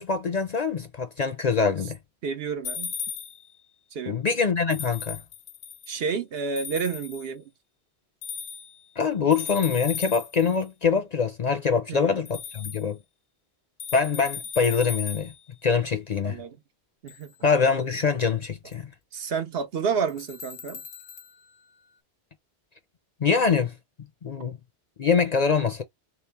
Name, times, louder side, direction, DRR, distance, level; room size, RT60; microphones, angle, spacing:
voice 1, 0.0-2.0 4.1-5.2 9.0-13.0 13.9-15.3 15.6-16.4 17.4-18.9 23.2-23.7 24.2-24.6 25.0-25.8, left 5 dB, 50° left, 0.6 m, -24 dB
voice 2, 2.2-2.9 3.9-4.2 5.9-7.4 11.9-12.2 16.2-16.6 17.0-17.3 19.1-20.8, right 5 dB, 65° right, 1.0 m, -30 dB
sound 1, 2.6-3.5 4.7-6.0 6.6-7.3 8.2-8.8 9.3-10.6 12.3-12.8 13.8-15.4 17.1-17.3 18.7-18.8 20.1-21.3, left 7 dB, 75° left, 0.9 m, -37 dB
3.1 x 3.0 x 3.4 m
omnidirectional pair, 1.1 m